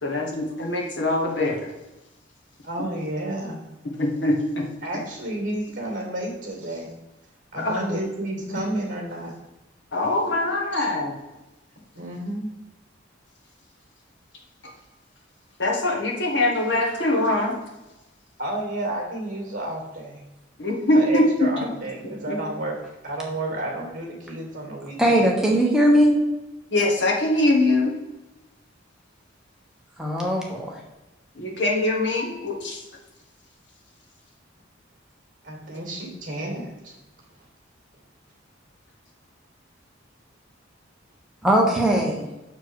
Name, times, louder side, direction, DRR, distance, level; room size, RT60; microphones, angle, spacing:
voice 1, 0.0-1.7 4.0-4.6 7.6-8.0 9.9-11.1 14.6-14.7 15.6-17.5 20.6-21.5 22.3-22.4 26.7-27.9 31.4-32.8, left 2 dB, 65° left, 0 dB, 1.5 m, -23 dB
voice 2, 2.6-3.7 4.8-6.9 7.5-9.3 10.7-10.9 11.9-12.5 18.4-20.2 20.9-22.7 23.0-25.3 35.4-37.0, right 1 dB, 40° right, 0 dB, 2.2 m, -31 dB
voice 3, 25.0-26.1 30.0-30.8 41.4-42.2, equal, 5° right, -2 dB, 1.1 m, -19 dB
6.6 x 4.5 x 4.7 m, 1.0 s
head